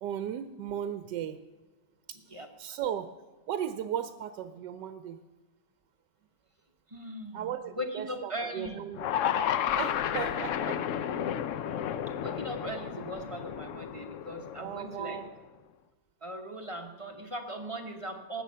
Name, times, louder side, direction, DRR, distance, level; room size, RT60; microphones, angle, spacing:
voice 1, 0.0-1.4 2.1-3.1 3.5-5.2 7.3-9.1 9.7-10.8 14.6-15.3, right 9 dB, 75° right, 10 dB, 1.2 m, -36 dB
voice 2, 2.3-2.8 6.9-8.8 12.2-15.2 16.2-18.4, equal, 25° right, 4 dB, 0.7 m, -39 dB
sound 1, 8.9-15.2, left 9 dB, 90° left, 0.6 m, -32 dB
19.0 x 7.7 x 5.5 m, 1.3 s
omnidirectional pair, 1.9 m